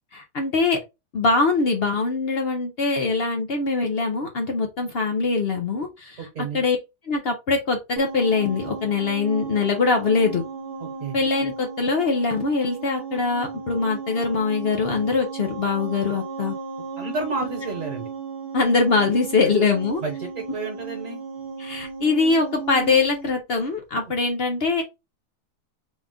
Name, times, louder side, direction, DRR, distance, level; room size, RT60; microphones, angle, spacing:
voice 1, 0.1-0.8 1.1-6.8 7.0-10.4 11.1-16.5 18.5-20.0 21.6-24.8, left 4 dB, 70° left, 3 dB, 0.5 m, -23 dB
voice 2, 6.2-6.6 10.8-11.2 17.0-18.1 20.0-21.2, right 3 dB, 55° right, 2 dB, 1.4 m, -31 dB
sound 1, 8.0-23.3, right 5 dB, 80° right, 1.3 m, -35 dB
4.1 x 2.4 x 3.5 m, 0.24 s
omnidirectional pair, 1.8 m